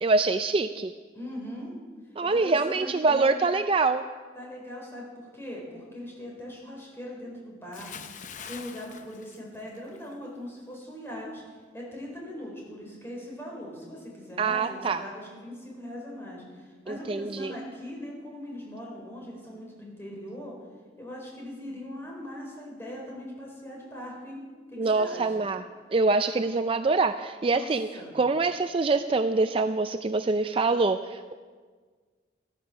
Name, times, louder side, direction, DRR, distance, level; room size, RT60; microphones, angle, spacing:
voice 1, 0.0-0.9 2.2-4.0 14.4-15.0 16.9-17.5 24.8-25.6 25.9-27.9 28.1-31.3, right 3 dB, 30° right, 9 dB, 0.4 m, -25 dB
voice 2, 1.1-1.7 2.3-3.4 4.3-8.0 8.5-20.6 21.0-24.4 24.7-25.5 27.4-27.7 27.9-28.1, left 1 dB, 15° left, -2 dB, 4.3 m, -40 dB
Bathtub (filling or washing) / Splash splatter, 7.7-10.2 10.5-10.8, left 7 dB, 45° left, 0.7 m, -44 dB
14.0 x 13.5 x 6.0 m, 1.5 s
head